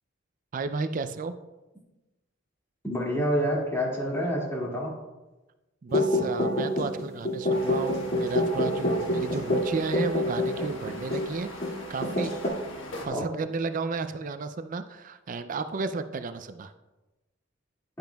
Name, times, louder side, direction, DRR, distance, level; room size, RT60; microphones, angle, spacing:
voice 1, 0.5-1.3 5.8-12.3 13.0-16.7, right 4 dB, 40° right, 10 dB, 0.4 m, -33 dB
voice 2, 2.8-4.9 13.1-13.2, equal, 15° left, -3 dB, 2.2 m, -27 dB
sound 1, 5.9-11.4 11.6-11.8 12.0-12.5, left 1 dB, 50° left, 2.3 m, -27 dB
sound 2, 7.5-13.1, left 1 dB, 70° left, 1.4 m, -42 dB
10.5 x 10.5 x 2.3 m, 1.1 s
head